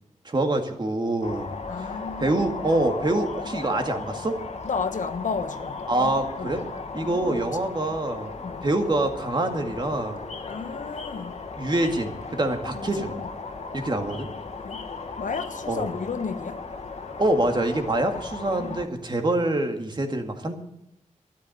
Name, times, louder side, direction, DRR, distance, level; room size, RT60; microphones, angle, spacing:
voice 1, 0.2-1.5 1.8-4.4 5.9-6.6 6.9-10.2 11.6-13.2 13.7-14.3 15.7-15.9 17.2-20.5, right 2 dB, 35° right, 2.0 m, -25 dB
sound 1, 1.2-18.9, left 4 dB, 60° left, 1.8 m, -36 dB
voice 2, 1.7-2.5 4.6-6.1 6.4-6.6 7.0-7.5 8.4-8.6 10.5-11.4 12.7-13.1 14.6-14.8 15.2-16.6 18.5-18.8, left 5 dB, 75° left, 1.3 m, -33 dB
12.5 x 10.5 x 8.0 m
wide cardioid pair, 115°, 13 cm